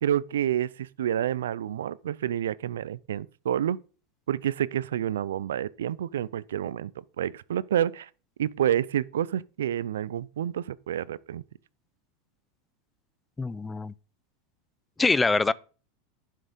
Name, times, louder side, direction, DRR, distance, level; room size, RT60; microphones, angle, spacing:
voice 1, 0.0-3.8 4.3-6.9 7.2-8.1 8.4-11.4, right 10 dB, 85° right, 0.5 m, -28 dB
voice 2, 13.4-13.9 15.0-15.5, left 3 dB, 15° left, 0.5 m, -24 dB
11.0 x 6.5 x 5.3 m
hypercardioid pair, 105°, 0 cm